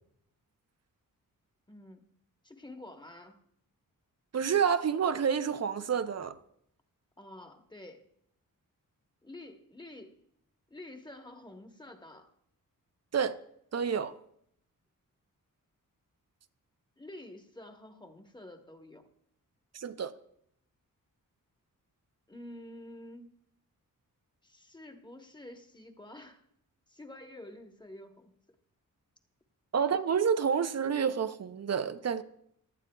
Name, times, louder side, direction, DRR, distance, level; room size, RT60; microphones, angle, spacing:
voice 1, 1.7-2.0 2.4-3.4 7.2-8.0 9.2-10.1 10.7-12.3 17.0-19.1 22.3-23.3 24.4-26.5 26.9-28.3, left 1 dB, 15° left, 1.1 m, -49 dB
voice 2, 4.3-6.4 13.1-13.4 13.7-14.2 19.7-20.1 29.7-32.2, right 7 dB, 50° right, 0.6 m, -29 dB
17.5 x 12.0 x 2.3 m
wide cardioid pair, 105°, 35 cm